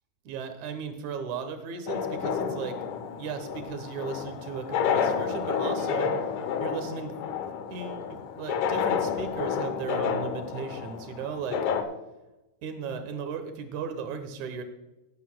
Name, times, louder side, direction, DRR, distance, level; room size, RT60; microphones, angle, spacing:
voice 1, 0.2-2.8 3.2-6.1 6.6-7.2 7.7-11.6 12.6-14.6, right 6 dB, 75° right, 7 dB, 2.4 m, -36 dB
sound 1, 1.9-11.8, left 7 dB, 80° left, 2.3 m, -30 dB
19.0 x 8.1 x 2.3 m, 1.0 s
omnidirectional pair, 3.6 m